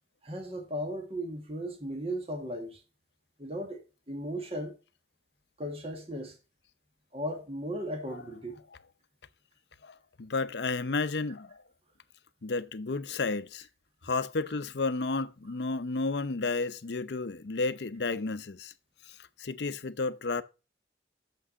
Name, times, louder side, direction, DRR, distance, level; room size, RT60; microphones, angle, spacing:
voice 1, 0.2-2.8 3.4-3.8 4.1-4.8 5.6-6.4 7.1-8.6, equal, 30° right, 1.8 m, -36 dB
voice 2, 9.8-11.6 12.4-13.7 14.0-18.7 19.4-20.4, left 3 dB, 70° left, 0.7 m, -32 dB
6.8 x 6.1 x 6.7 m
head